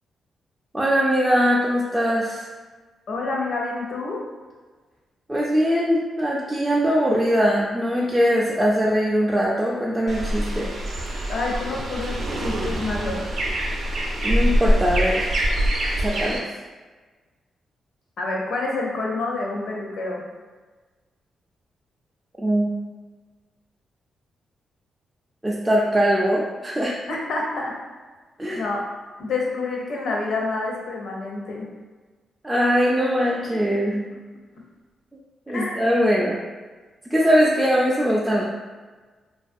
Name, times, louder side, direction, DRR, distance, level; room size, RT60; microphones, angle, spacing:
voice 1, 0.7-2.5 5.3-10.7 14.2-15.3 16.0-16.4 22.4-22.7 25.4-26.9 28.4-28.6 32.4-34.0 35.5-36.4 37.0-38.5, equal, 10° right, -5 dB, 0.3 m, -21 dB
voice 2, 3.1-4.2 11.3-12.1 12.4-13.3 18.2-20.2 27.1-27.7 28.5-28.8 29.2-31.7 35.5-35.8, left 3 dB, 70° left, -2 dB, 0.6 m, -28 dB
sound 1, 10.1-16.4, equal, 70° right, 0.5 m, -24 dB
2.3 x 2.3 x 2.6 m, 1.3 s
cardioid pair, 90°, 0 cm